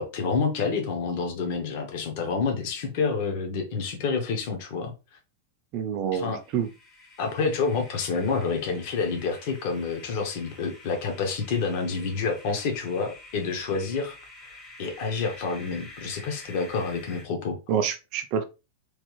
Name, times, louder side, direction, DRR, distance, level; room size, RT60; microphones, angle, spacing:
voice 1, 0.0-4.9 6.1-6.4 7.2-17.6, left 4 dB, 45° left, 0.8 m, -28 dB
voice 2, 5.7-6.7 17.7-18.4, right 8 dB, 35° right, 0.4 m, -27 dB
sound 1, 6.3-17.2, left 2 dB, 15° left, 0.7 m, -48 dB
3.1 x 2.3 x 3.1 m
supercardioid pair, 165°, 0 cm